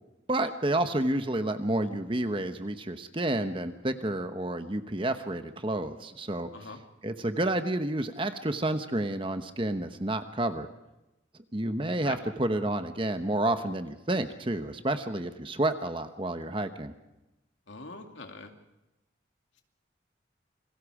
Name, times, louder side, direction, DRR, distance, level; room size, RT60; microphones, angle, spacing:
voice 1, 0.3-6.5 7.0-10.7 11.5-16.9, right 1 dB, 30° right, 8 dB, 1.1 m, -30 dB
voice 2, 17.7-18.5, left 3 dB, 85° left, 4 dB, 2.5 m, -42 dB
28.5 x 22.0 x 5.0 m, 0.97 s
head